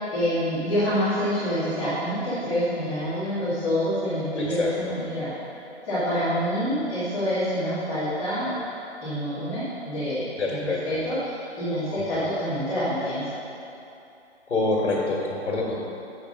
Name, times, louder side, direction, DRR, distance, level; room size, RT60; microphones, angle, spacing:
voice 1, 0.1-5.3 5.8-8.5 9.0-13.2, equal, 10° left, -17 dB, 1.6 m, -27 dB
voice 2, 4.4-4.9 10.4-10.8 11.9-12.2 14.5-15.2 15.5-15.8, left 3 dB, 80° left, -4 dB, 1.7 m, -26 dB
7.0 x 5.3 x 5.2 m, 2.7 s
hypercardioid pair, 165°, 34 cm